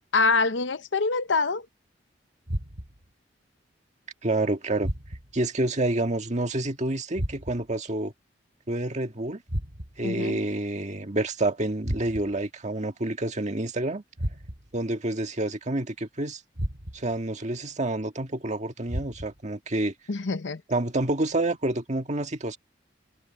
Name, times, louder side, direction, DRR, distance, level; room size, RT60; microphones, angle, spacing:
voice 1, 0.1-1.7 10.0-10.4 20.1-20.6, left 4 dB, 85° left, 0.8 m, -25 dB
sound 1, 2.5-3.1 4.8-5.4 7.1-7.8 9.5-10.1 11.8-12.5 14.2-14.8 16.5-17.2 18.9-19.5, equal, 65° right, 2.9 m, -33 dB
voice 2, 4.2-4.9 5.3-8.1 8.7-9.4 10.0-14.0 14.7-16.4 16.9-19.9 20.7-22.6, right 2 dB, 40° right, 1.8 m, -28 dB
head